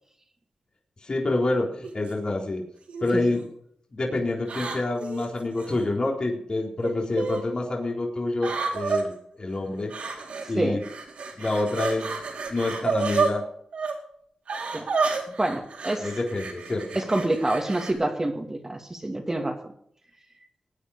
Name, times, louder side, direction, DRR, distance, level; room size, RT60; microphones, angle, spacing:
voice 1, 1.0-2.6 3.0-3.5 3.9-9.1 9.4-9.9 10.5-10.8 11.4-12.2 12.5-13.4 16.0-17.0, left 2 dB, 45° left, -1 dB, 4.0 m, -27 dB
sound 1, 1.8-2.1 2.9-3.4 4.5-5.8 6.8-7.4 8.4-9.0 9.9-10.5 10.8-13.3 13.7-13.9 14.5-17.9, right 4 dB, 75° right, 4.3 m, -30 dB
voice 2, 15.4-16.1 17.0-19.7, right 1 dB, 25° right, 3 dB, 2.4 m, -27 dB
20.0 x 9.6 x 5.1 m, 0.66 s
cardioid pair, 60°, 2 cm